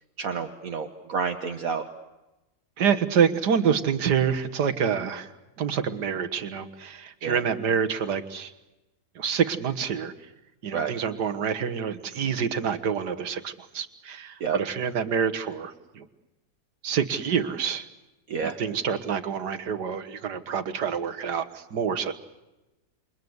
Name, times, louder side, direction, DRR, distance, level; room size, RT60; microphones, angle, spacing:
voice 1, 0.2-1.8 7.2-7.4 10.7-10.9 14.4-14.6 18.3-18.6, right 6 dB, 60° right, 6 dB, 1.6 m, -29 dB
voice 2, 2.8-5.3 5.6-8.5 9.2-10.1 10.6-16.1 16.8-17.9 18.4-22.1, right 7 dB, 90° right, 10 dB, 2.0 m, -27 dB
28.5 x 24.5 x 8.0 m, 1.0 s
omnidirectional pair, 1.7 m